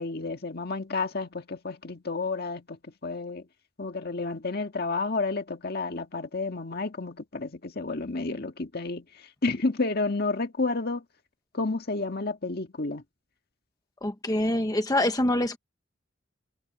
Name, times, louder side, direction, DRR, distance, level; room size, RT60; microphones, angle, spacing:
voice 1, 0.0-2.8 3.0-3.4 3.8-9.0 9.4-11.0 11.5-13.0, left 3 dB, 55° left, 1.8 m, -30 dB
voice 2, 14.0-15.6, left 1 dB, 20° left, 0.9 m, -25 dB
head